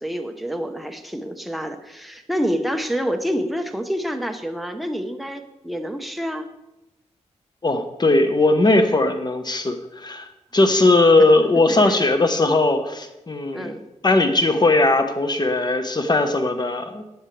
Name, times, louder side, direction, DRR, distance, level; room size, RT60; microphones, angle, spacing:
voice 1, 0.0-6.5 11.8-12.0 13.5-13.8, equal, ahead, 5 dB, 1.0 m, -27 dB
voice 2, 7.6-13.7 14.0-17.0, left 2 dB, 35° left, 7 dB, 1.2 m, -19 dB
15.0 x 10.0 x 3.4 m, 0.95 s
wide cardioid pair, 90°, 13 cm